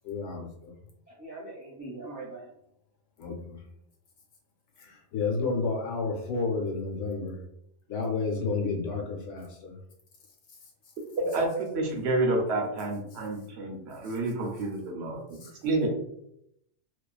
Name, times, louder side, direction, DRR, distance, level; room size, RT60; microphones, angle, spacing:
voice 1, 0.0-0.7 3.2-3.6 4.8-7.4 7.9-9.7 15.4-15.6, left 4 dB, 75° left, -1 dB, 1.1 m, -31 dB
voice 2, 1.1-2.5, right 2 dB, 15° left, -6 dB, 1.0 m, -41 dB
voice 3, 11.2-15.2 15.6-15.9, right 2 dB, 70° right, 1 dB, 0.9 m, -29 dB
2.5 x 2.3 x 2.3 m, 0.78 s
omnidirectional pair, 1.2 m